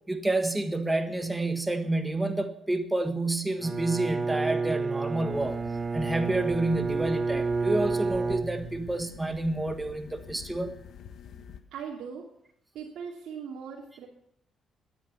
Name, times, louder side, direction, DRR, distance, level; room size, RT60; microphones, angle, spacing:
voice 1, 0.1-5.6 5.9-10.7, right 2 dB, 10° right, 7 dB, 1.5 m, -29 dB
Bowed string instrument, 3.6-9.1, right 4 dB, 30° right, 0.6 m, -30 dB
sound 1, 5.3-11.6, left 8 dB, 65° left, 1.3 m, -47 dB
voice 2, 11.7-12.3 12.7-14.1, right 6 dB, 80° right, -3 dB, 2.6 m, -39 dB
15.0 x 9.9 x 7.0 m, 0.74 s
cardioid pair, 90°, 0 cm